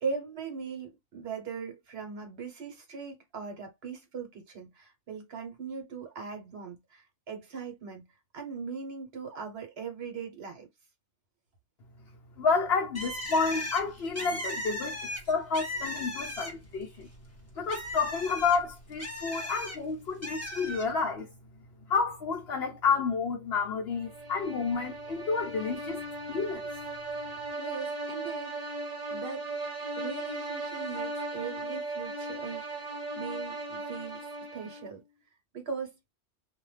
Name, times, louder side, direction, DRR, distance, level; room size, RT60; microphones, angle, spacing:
voice 1, 0.0-8.0 8.3-10.7 27.2-28.8 29.1-29.5 30.0-35.0 35.5-36.0, right 5 dB, 60° right, 1.1 m, -39 dB
voice 2, 12.4-15.0 15.3-17.1 17.6-21.3 21.9-26.0 26.3-26.7, left 5 dB, 65° left, 0.9 m, -30 dB
Bird, 12.9-16.8 17.1-19.8 20.2-20.9, left 1 dB, 15° left, 0.9 m, -37 dB
sound 1, 24.0-35.0, right 2 dB, 40° right, 0.7 m, -37 dB
2.5 x 2.2 x 3.1 m
omnidirectional pair, 1.2 m